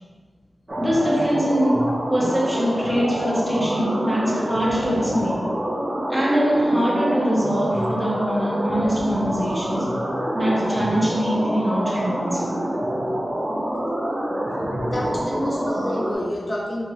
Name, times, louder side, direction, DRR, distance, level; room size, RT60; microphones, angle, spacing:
sound 1, 0.7-16.2, equal, 30° right, 0.6 m, -26 dB
voice 1, 0.8-5.3 6.1-9.9 10.3-12.5, equal, 5° right, -4 dB, 0.8 m, -23 dB
voice 2, 2.8-3.3 11.5-11.6 14.8-16.9, left 1 dB, 25° left, -2 dB, 0.4 m, -29 dB
4.5 x 2.8 x 2.7 m, 1.5 s
wide cardioid pair, 110°, 0 cm